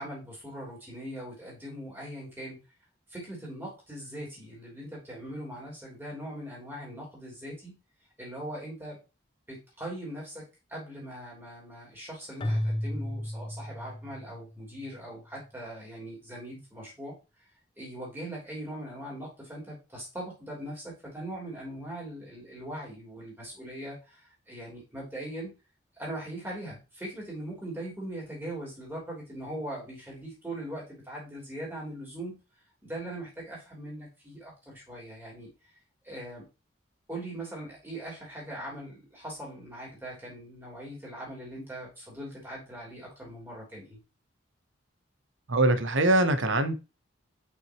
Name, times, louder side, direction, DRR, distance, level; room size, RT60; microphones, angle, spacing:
voice 1, 0.0-2.6 3.1-7.8 8.2-9.0 9.5-17.2 17.8-25.5 26.0-32.4 32.8-35.5 36.0-36.4 37.1-44.0, right 1 dB, 10° right, -4 dB, 3.1 m, -40 dB
Keyboard (musical), 12.4-14.7, left 1 dB, 25° left, 0.5 m, -33 dB
voice 2, 45.5-46.7, right 2 dB, 70° right, 10 dB, 0.9 m, -23 dB
6.0 x 5.9 x 3.0 m, 0.28 s
head